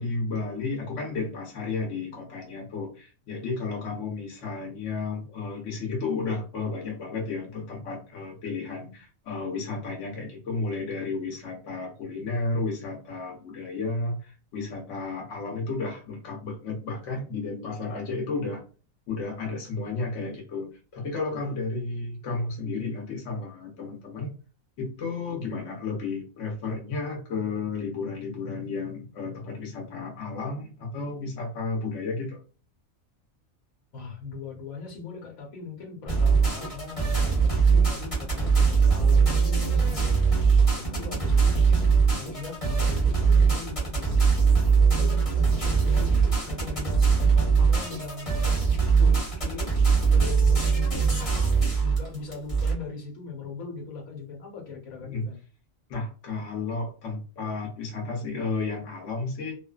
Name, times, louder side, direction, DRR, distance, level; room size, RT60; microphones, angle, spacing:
voice 1, 0.0-18.6 19.1-24.3 24.8-32.4 55.0-55.3 55.9-59.5, left 3 dB, 65° left, 0 dB, 1.1 m, -32 dB
voice 2, 33.9-40.2 40.7-44.4 44.9-48.3 49.0-49.7 50.1-51.3 51.8-55.4, left 5 dB, 90° left, 0 dB, 1.4 m, -39 dB
sound 1, 36.1-52.7, right 5 dB, 25° left, 1.2 m, -21 dB
2.6 x 2.4 x 2.3 m, 0.35 s
omnidirectional pair, 1.4 m